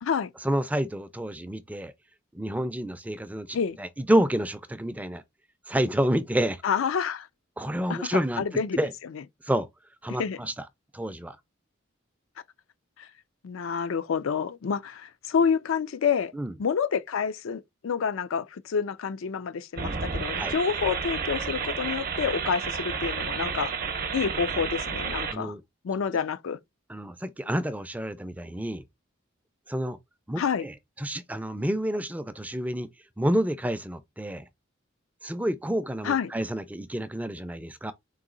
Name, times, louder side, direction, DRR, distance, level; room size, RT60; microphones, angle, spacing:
voice 1, 0.4-1.9 2.3-5.2 5.7-6.6 7.6-8.9 9.4-9.7 10.0-10.5 10.9-11.4 16.3-16.5 20.4-20.5 25.3-25.6 26.9-28.8 29.7-30.0 30.3-32.9 33.2-34.4 35.2-37.9, right 1 dB, 5° right, 0.4 m, -29 dB
voice 2, 6.6-7.3 7.9-8.8 10.2-10.4 13.0-13.1 13.4-16.3 16.6-23.7 24.1-25.5 25.8-26.6 30.4-30.6 36.0-36.3, left 6 dB, 85° left, 0.4 m, -28 dB
sound 1, 19.8-25.4, right 5 dB, 45° right, 0.7 m, -31 dB
3.9 x 2.7 x 3.8 m
head